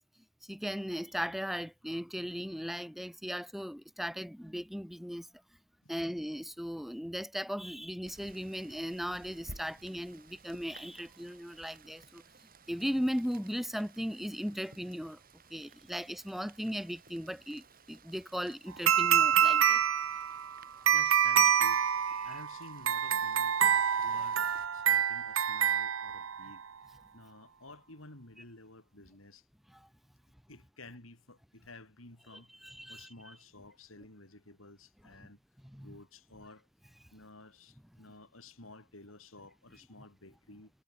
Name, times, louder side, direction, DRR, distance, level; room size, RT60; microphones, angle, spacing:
voice 1, 0.4-5.3 5.9-12.2 12.7-15.2 15.5-19.8 29.7-29.9 32.6-33.3 35.6-36.0, equal, ahead, 1.6 m, -37 dB
Rain, 8.0-24.7, right 3 dB, 45° right, 5.3 m, -57 dB
sound 1, 18.9-26.6, right 8 dB, 80° right, 0.9 m, -27 dB
voice 2, 20.9-21.9 22.2-23.6 24.0-24.4 24.7-26.6 27.1-29.5 30.5-32.5 32.9-35.4 35.8-36.7 37.1-40.7, left 2 dB, 80° left, 5.8 m, -53 dB
head